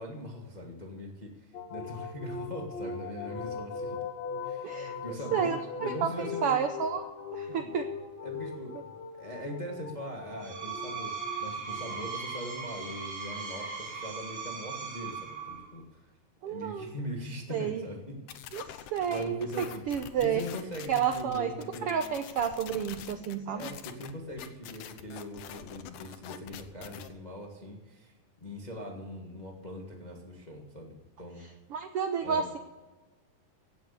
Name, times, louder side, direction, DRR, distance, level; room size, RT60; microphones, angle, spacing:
voice 1, 0.0-4.0 4.4-5.5 5.8-6.6 7.5-7.7 8.2-8.8 9.1-16.1 16.5-18.2 18.6-18.8 19.0-19.8 20.1-22.0 22.6-22.7 23.5-28.1 28.4-31.4 32.2-32.5, equal, 30° left, 1 dB, 0.7 m, -41 dB
sound 1, 1.5-12.2, left 5 dB, 60° left, 2.6 m, -40 dB
voice 2, 4.6-5.0 5.3-5.6 6.0-6.1 6.4-7.0 7.3-7.9 16.4-16.9 17.5-17.8 18.5-20.4 20.9-21.5 21.8-23.7 31.7-32.6, right 8 dB, 90° right, 7 dB, 1.2 m, -30 dB
Screech, 10.3-15.8, right 5 dB, 60° right, 7.0 m, -38 dB
sound 2, 18.3-27.1, left 10 dB, 80° left, 2.4 m, -45 dB
16.5 x 8.3 x 6.7 m, 1.2 s
omnidirectional pair, 3.7 m